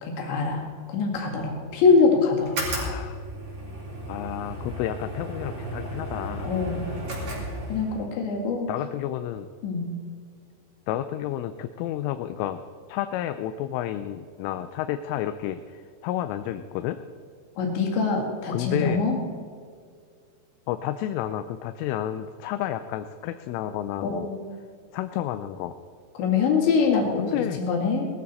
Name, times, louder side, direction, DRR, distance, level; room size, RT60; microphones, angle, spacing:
voice 1, 0.0-2.6 6.4-6.8 7.7-8.7 9.6-9.9 17.6-19.2 24.0-24.5 26.2-28.1, left 4 dB, 65° left, 0 dB, 4.2 m, -24 dB
sound 1, 2.4-8.1, right 1 dB, 35° right, 4.6 m, -34 dB
voice 2, 2.7-3.2 4.1-6.5 8.7-9.5 10.9-12.6 12.9-17.0 18.5-19.0 20.7-24.3 24.9-25.7 27.2-27.6, left 12 dB, 85° left, 9 dB, 3.1 m, -31 dB
20.0 x 14.0 x 4.2 m, 2.1 s
omnidirectional pair, 5.8 m